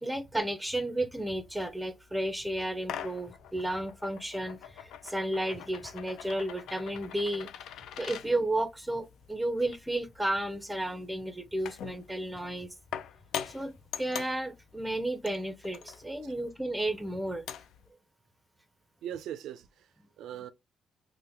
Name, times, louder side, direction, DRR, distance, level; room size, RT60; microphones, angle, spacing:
voice 1, 0.0-7.5 8.0-12.7 13.5-17.4, right 1 dB, 5° right, 0.6 m, -33 dB
sound 1, 1.2-17.9, left 9 dB, 80° left, 0.3 m, -45 dB
voice 2, 19.0-20.5, right 10 dB, 85° right, 0.3 m, -41 dB
3.0 x 2.1 x 3.4 m
cardioid pair, 90°, 0 cm